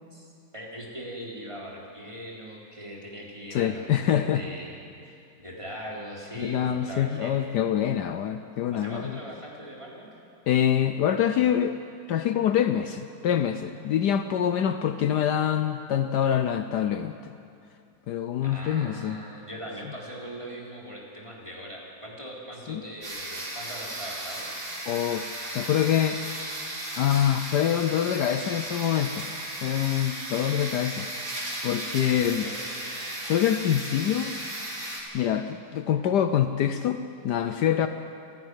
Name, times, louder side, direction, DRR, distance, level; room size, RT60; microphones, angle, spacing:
voice 1, 0.1-4.8 5.0-7.4 8.7-10.1 18.4-24.5 32.1-32.6, equal, 15° right, -4 dB, 3.9 m, -40 dB
voice 2, 3.5-4.4 6.4-9.2 10.5-11.7 12.1-17.3 18.1-19.2 22.7-22.8 24.9-26.2 27.0-29.3 29.6-31.1 31.6-32.5 33.3-34.3 35.1-37.9, left 10 dB, 70° left, 9 dB, 1.2 m, -25 dB
sound 1, 23.0-35.0, right 1 dB, 55° right, 4.1 m, -35 dB
28.5 x 11.0 x 9.7 m, 2.5 s
omnidirectional pair, 2.0 m